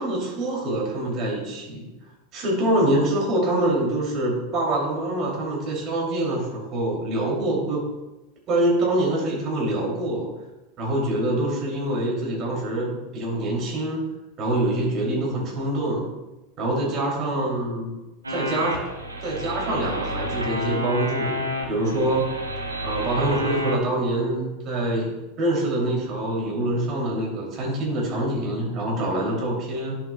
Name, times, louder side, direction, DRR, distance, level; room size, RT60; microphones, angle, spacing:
voice 1, 0.0-1.9 2.3-7.8 8.5-10.3 10.8-14.0 14.4-16.1 16.6-17.9 18.3-18.8 19.2-21.4 21.7-22.3 22.8-30.0, right 1 dB, 35° right, -2 dB, 2.8 m, -25 dB
sound 1, 18.2-23.8, equal, 80° right, 0.9 m, -30 dB
10.0 x 7.1 x 2.2 m, 1.0 s
figure-of-eight pair, 85°, 0 cm